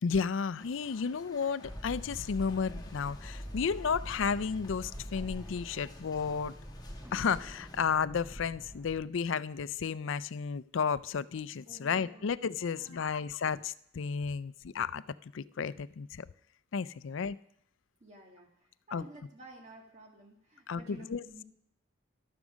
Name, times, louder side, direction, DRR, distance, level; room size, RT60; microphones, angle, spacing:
voice 1, 0.0-6.5 7.1-16.3 16.7-17.4 18.9-19.0 20.7-21.2, left 6 dB, 70° left, 17 dB, 0.4 m, -33 dB
sound 1, 0.6-7.8, left 3 dB, 20° left, 2.2 m, -55 dB
sound 2, 1.6-9.0, equal, 5° right, 0.6 m, -44 dB
voice 2, 11.7-12.3 12.6-13.3 18.0-21.4, right 1 dB, 35° right, 0 dB, 2.1 m, -53 dB
12.5 x 11.0 x 6.3 m, 0.69 s
head